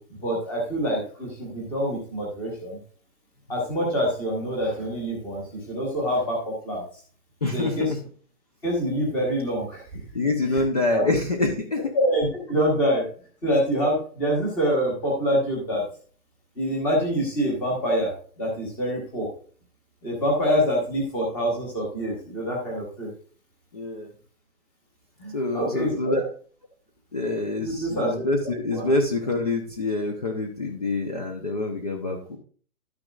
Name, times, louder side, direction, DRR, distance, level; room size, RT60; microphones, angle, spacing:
voice 1, 0.0-2.8 3.5-7.0 7.5-7.9 8.6-10.0 10.5-10.6 10.9-11.0 11.9-13.0 13.4-15.8 16.5-19.3 20.0-23.1 25.2-26.2 27.6-28.2 28.7-28.9, equal, 5° left, -3 dB, 1.2 m, -26 dB
voice 2, 7.4-7.8 10.1-11.9 23.7-24.1 25.3-26.2 27.1-32.4, left 2 dB, 25° left, 3 dB, 0.8 m, -26 dB
12.0 x 9.7 x 2.4 m, 0.44 s
hypercardioid pair, 175°, 44 cm